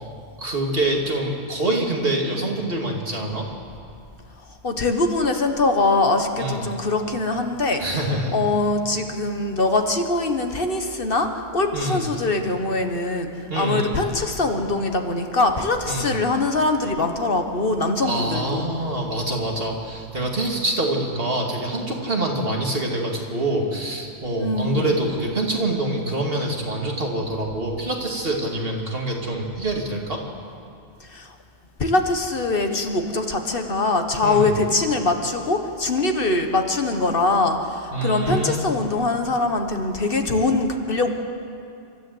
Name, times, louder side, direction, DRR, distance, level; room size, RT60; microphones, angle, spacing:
voice 1, 0.4-3.5 6.4-6.7 7.8-8.3 11.7-12.1 13.5-14.0 15.8-16.1 18.0-30.2 34.2-34.5 37.9-38.6, right 1 dB, 60° right, 0 dB, 2.8 m, -25 dB
voice 2, 4.5-7.8 8.3-13.3 13.6-18.7 24.4-24.9 31.0-31.3 31.8-41.1, left 2 dB, 55° left, 5 dB, 1.6 m, -23 dB
28.0 x 13.0 x 8.0 m, 2.5 s
omnidirectional pair, 1.1 m